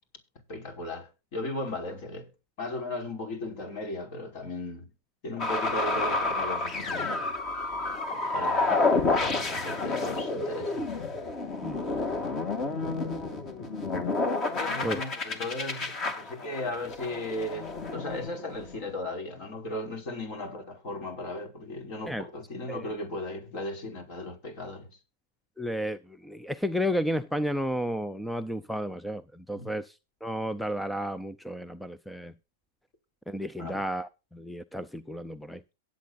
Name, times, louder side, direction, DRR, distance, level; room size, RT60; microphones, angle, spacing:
voice 1, 0.5-2.3 2.6-4.9 5.2-7.2 8.1-10.8 14.5-25.0 29.6-29.7 33.6-33.8, left 2 dB, 50° left, 5.3 m, -36 dB
sound 1, 5.4-18.9, left 3 dB, 30° left, 2.6 m, -30 dB
voice 2, 25.6-29.9 30.2-32.3 33.3-35.6, equal, ahead, 0.5 m, -32 dB
23.0 x 8.4 x 2.6 m
hypercardioid pair, 125°, 0 cm